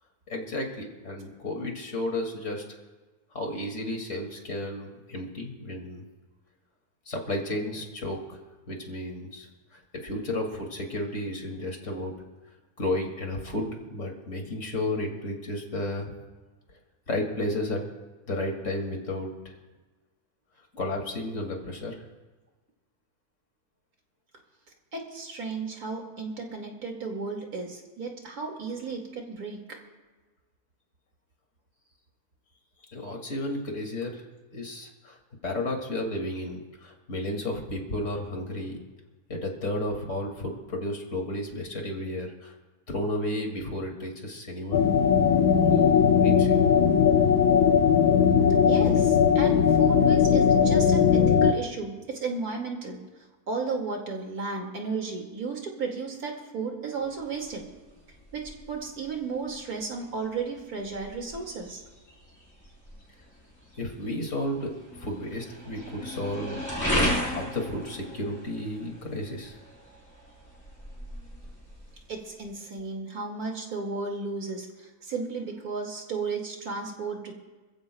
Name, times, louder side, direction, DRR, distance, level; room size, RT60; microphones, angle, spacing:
voice 1, 0.3-2.6 3.3-6.0 7.1-8.4 8.7-12.1 12.8-16.1 17.1-17.8 18.3-19.5 20.7-22.0 32.9-34.2 34.5-35.2 35.4-38.8 39.3-42.5 42.9-45.3 45.6-46.6 63.8-66.6 67.2-69.6, left 1 dB, 55° left, 1 dB, 2.8 m, -33 dB
voice 2, 24.9-29.6 48.7-53.0 53.5-57.6 58.3-61.8 72.1-77.3, right 4 dB, 80° right, 1 dB, 2.7 m, -34 dB
sound 1, 44.7-51.5, left 7 dB, 90° left, 1.3 m, -19 dB
sound 2, 57.0-72.5, equal, 10° left, 3.9 m, -36 dB
27.5 x 15.0 x 2.3 m, 1.2 s
omnidirectional pair, 1.6 m